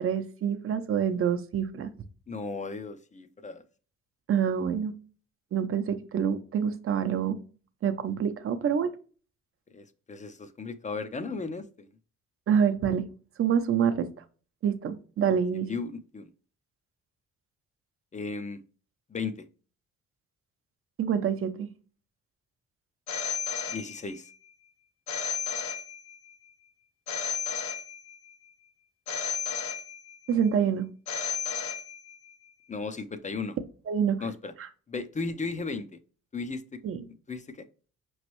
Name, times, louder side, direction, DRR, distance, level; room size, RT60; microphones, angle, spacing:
voice 1, 0.0-1.9 4.3-4.9 5.5-7.4 7.8-8.9 12.5-13.0 13.4-14.1 14.6-15.7 21.0-21.7 30.3-30.9 33.9-34.2 36.8-37.0, right 8 dB, 45° right, 9 dB, 0.7 m, -26 dB
voice 2, 2.3-3.6 9.7-11.9 15.7-16.3 18.1-18.6 19.1-19.3 23.7-24.3 32.7-33.6 34.2-34.5 34.9-36.0 36.3-36.8 37.3-37.6, left 4 dB, 25° left, 11 dB, 0.5 m, -35 dB
Telephone, 23.1-24.3 25.1-26.3 27.1-28.3 29.1-30.3 31.1-32.3, left 7 dB, 70° left, 0.9 m, -33 dB
5.1 x 3.1 x 3.0 m, 0.39 s
cardioid pair, 90°, 30 cm